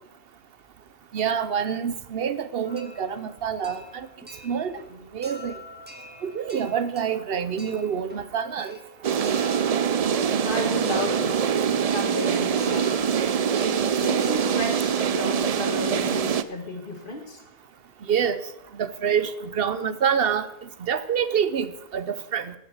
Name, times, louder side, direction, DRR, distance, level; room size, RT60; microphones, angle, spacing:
voice 1, 1.1-4.1 4.4-4.8 5.1-5.6 6.2-8.8 18.1-18.4 18.7-20.5 20.8-22.5, right 7 dB, 70° right, 13 dB, 0.9 m, -26 dB
sound 1, 2.6-14.3, left 2 dB, 10° right, 1.3 m, -46 dB
sound 2, 9.0-16.4, right 7 dB, 50° right, 0.5 m, -24 dB
voice 2, 10.4-11.4 11.9-13.1 14.0-17.4, left 2 dB, 55° left, 3 dB, 2.1 m, -33 dB
16.5 x 6.6 x 6.4 m, 0.89 s
omnidirectional pair, 1.0 m